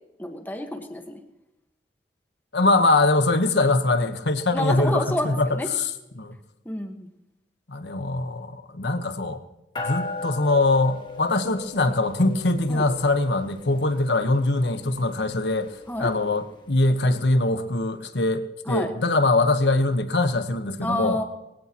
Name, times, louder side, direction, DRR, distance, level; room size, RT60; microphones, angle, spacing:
voice 1, 0.2-1.2 4.5-5.7 6.6-7.1 12.7-12.8 15.9-16.1 18.7-18.9 20.8-21.2, left 1 dB, 10° left, 4 dB, 1.5 m, -29 dB
voice 2, 2.5-5.9 6.1-6.4 7.7-9.4 9.8-21.2, left 2 dB, 80° left, 9 dB, 1.3 m, -23 dB
sound 1, 9.8-17.4, left 3 dB, 25° left, 1.8 m, -39 dB
22.5 x 17.0 x 3.0 m, 0.91 s
head